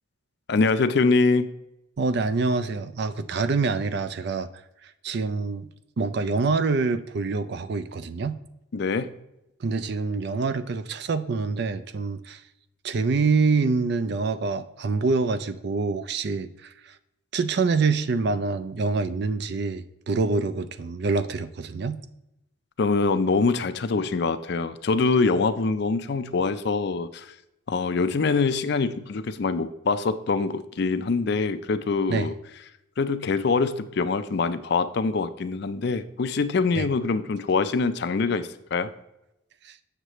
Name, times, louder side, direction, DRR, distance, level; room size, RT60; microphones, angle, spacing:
voice 1, 0.5-1.5 8.7-9.1 22.8-27.3 27.7-32.3 33.0-38.9, left 4 dB, 50° left, 11 dB, 0.4 m, -24 dB
voice 2, 2.0-4.5 5.0-5.7 6.0-8.4 9.6-12.4 12.8-16.7 17.3-22.0 32.1-32.3 36.8-36.9 39.6-39.7, right 4 dB, 50° right, 12 dB, 0.4 m, -26 dB
7.9 x 6.6 x 3.0 m, 0.86 s
head